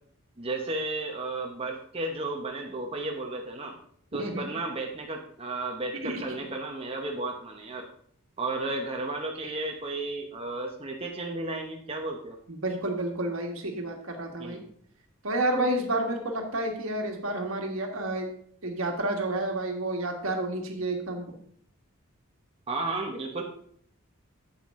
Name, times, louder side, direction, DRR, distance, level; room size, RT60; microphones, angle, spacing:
voice 1, 0.4-3.8 4.1-7.9 8.4-12.4 14.3-14.6 22.7-23.4, right 2 dB, 25° right, 1 dB, 0.8 m, -33 dB
voice 2, 4.2-4.5 6.0-6.4 12.5-14.6 15.2-18.3 18.6-21.3, right 1 dB, 70° right, 3 dB, 1.6 m, -30 dB
8.3 x 8.0 x 3.6 m, 0.63 s
head